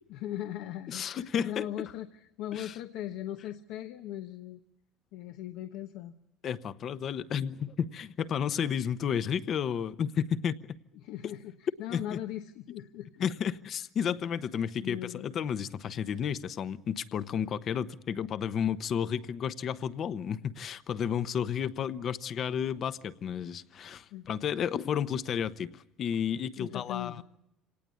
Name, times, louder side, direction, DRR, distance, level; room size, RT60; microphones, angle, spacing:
voice 1, 0.1-4.6 5.1-6.1 11.0-13.2 14.8-15.3 24.1-24.3 26.6-27.2, left 12 dB, 75° left, 1.0 m, -39 dB
voice 2, 0.9-1.9 2.5-2.8 6.4-10.6 11.9-12.2 13.2-27.2, left 8 dB, 45° left, 0.9 m, -32 dB
26.0 x 18.5 x 8.4 m
cardioid pair, 130°, 0 cm